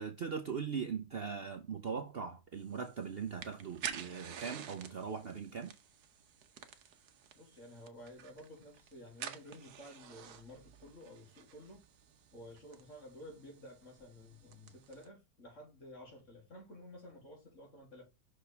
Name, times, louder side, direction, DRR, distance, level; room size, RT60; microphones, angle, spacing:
voice 1, 0.0-5.7, right 6 dB, 50° right, 0.7 m, -40 dB
sound 1, 2.6-15.1, right 9 dB, 75° right, 1.3 m, -50 dB
voice 2, 7.3-11.8 12.3-18.0, left 1 dB, 50° left, 3.2 m, -53 dB
6.1 x 5.0 x 3.3 m
omnidirectional pair, 1.7 m